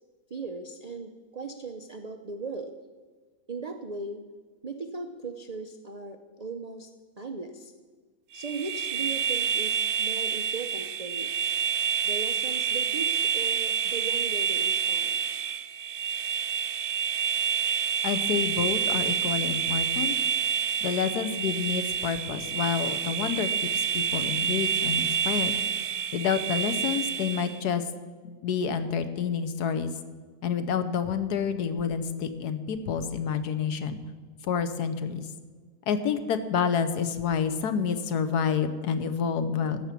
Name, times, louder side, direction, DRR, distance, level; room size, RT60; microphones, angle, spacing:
voice 1, 0.3-2.7 3.5-4.2 4.6-7.7 8.3-11.5 12.0-15.2, right 4 dB, 80° right, 6 dB, 0.3 m, -38 dB
sound 1, 8.4-27.6, right 7 dB, 60° right, 0.9 m, -28 dB
voice 2, 18.0-20.1 20.8-25.5 26.1-27.8 28.4-29.9 30.4-34.0 34.4-35.3 35.9-39.8, left 7 dB, 75° left, 10 dB, 1.4 m, -28 dB
14.0 x 6.0 x 8.3 m, 1.5 s
omnidirectional pair, 1.7 m